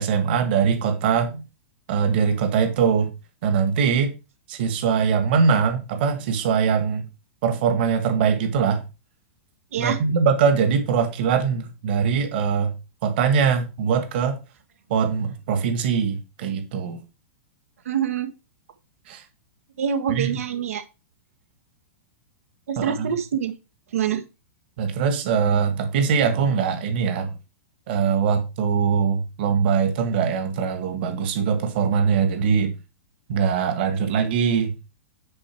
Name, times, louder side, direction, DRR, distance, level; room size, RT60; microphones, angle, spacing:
voice 1, 0.0-1.4 1.9-3.1 3.4-4.1 4.5-7.0 7.4-8.8 9.8-12.7 13.0-14.4 14.9-17.0 19.1-19.2 20.1-20.4 22.8-23.1 24.8-27.4 27.9-32.7 33.3-34.7, right 6 dB, 45° right, 1.7 m, -22 dB
voice 2, 17.8-18.3 19.8-20.8 22.7-23.5 23.9-24.2, right 8 dB, 85° right, 1.5 m, -25 dB
9.8 x 4.5 x 4.5 m
supercardioid pair, 170°, 7 cm